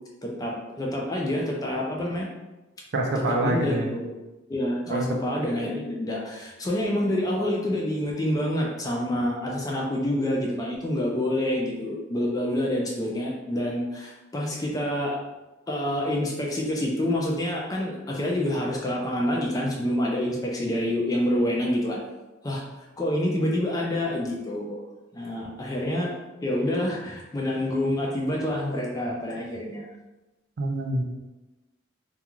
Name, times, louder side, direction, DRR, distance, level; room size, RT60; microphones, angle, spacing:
voice 1, 0.2-2.3 3.2-4.1 4.5-15.2 15.7-22.0 22.4-22.6 23.0-24.8 25.1-26.1 26.4-29.9, left 1 dB, 20° left, -2 dB, 0.3 m, -27 dB
voice 2, 2.9-3.9 4.9-5.1 30.6-31.0, right 1 dB, 55° right, 1 dB, 0.4 m, -26 dB
2.3 x 2.3 x 2.9 m, 1.1 s
head